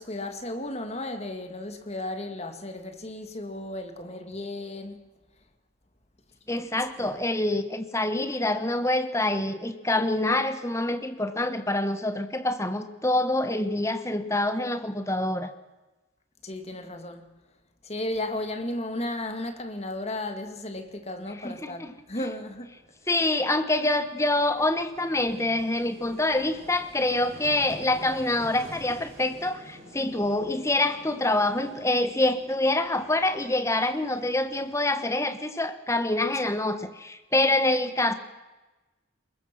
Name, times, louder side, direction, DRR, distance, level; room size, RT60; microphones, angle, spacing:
voice 1, 0.0-5.0 16.4-17.3 17.8-22.7, left 1 dB, 30° left, 2.0 m, -34 dB
voice 2, 6.5-15.5 21.4-21.9 23.1-38.1, left 2 dB, 15° left, 1.4 m, -26 dB
Vehicle, 18.7-18.8 18.9-19.1 21.1-21.2 21.4-34.8, equal, 30° right, 5.8 m, -49 dB
23.0 x 21.0 x 6.0 m
head